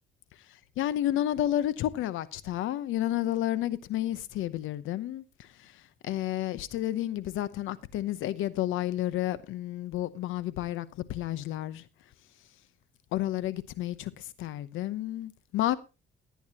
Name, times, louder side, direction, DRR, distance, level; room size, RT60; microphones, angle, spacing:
voice 1, 0.5-11.9 13.1-15.8, left 13 dB, 90° left, 0.8 m, -31 dB
18.5 x 9.4 x 2.9 m
cardioid pair, 90°, 20 cm